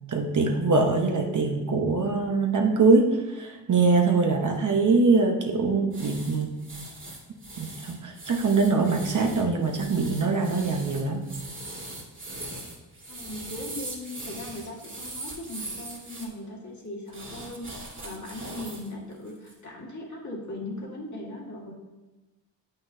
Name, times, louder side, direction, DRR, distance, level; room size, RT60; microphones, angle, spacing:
voice 1, 0.1-6.5 7.6-11.2, right 4 dB, 45° right, 2 dB, 0.9 m, -23 dB
sound 1, 5.9-16.3 17.1-18.9 19.3-19.5, right 2 dB, 30° right, 2.0 m, -40 dB
voice 2, 13.1-21.7, left 1 dB, 40° left, -3 dB, 1.9 m, -39 dB
7.8 x 5.7 x 2.7 m, 1.1 s
cardioid pair, 65°, 43 cm